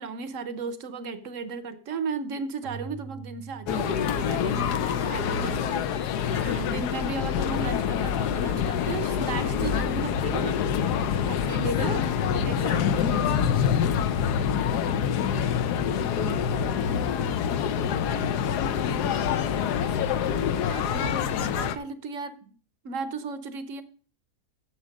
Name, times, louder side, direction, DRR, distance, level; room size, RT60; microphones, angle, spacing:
voice 1, 0.0-10.6 11.3-13.5 20.7-22.5 22.8-23.8, right 5 dB, 55° right, 12 dB, 1.1 m, -35 dB
Keyboard (musical), 2.6-6.2, right 7 dB, 80° right, 1.3 m, -46 dB
sound 1, 3.7-21.8, left 8 dB, 80° left, 1.2 m, -26 dB
voice 2, 11.8-12.4 15.3-20.7, left 4 dB, 40° left, 10 dB, 0.4 m, -40 dB
8.8 x 7.2 x 5.2 m, 0.41 s
omnidirectional pair, 1.7 m